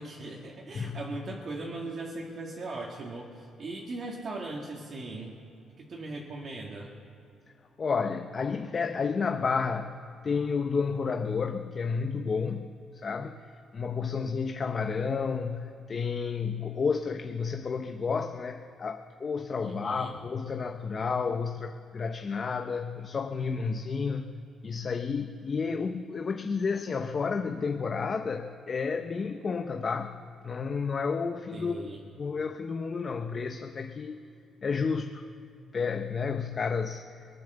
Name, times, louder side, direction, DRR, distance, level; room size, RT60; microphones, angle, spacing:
voice 1, 0.0-5.3 5.8-6.9 19.6-20.2 31.5-32.1, right 2 dB, 50° right, -2 dB, 2.2 m, -39 dB
voice 2, 7.8-10.0 10.2-12.7 13.0-13.3 13.7-24.3 24.6-30.1 30.4-31.8 32.2-34.2 34.6-35.3 35.7-37.1, left 5 dB, 40° left, 6 dB, 0.8 m, -31 dB
19.5 x 11.0 x 6.9 m, 2.7 s
cardioid pair, 90°, 0 cm